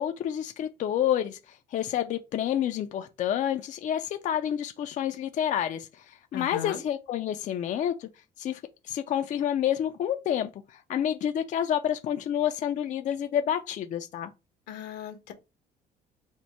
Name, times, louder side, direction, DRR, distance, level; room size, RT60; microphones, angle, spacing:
voice 1, 0.0-8.1 8.4-14.3, left 10 dB, 45° left, 0.4 m, -29 dB
voice 2, 6.3-6.8 14.7-15.3, left 9 dB, 85° left, 0.9 m, -37 dB
4.3 x 2.1 x 4.3 m
cardioid pair, 110°, 17 cm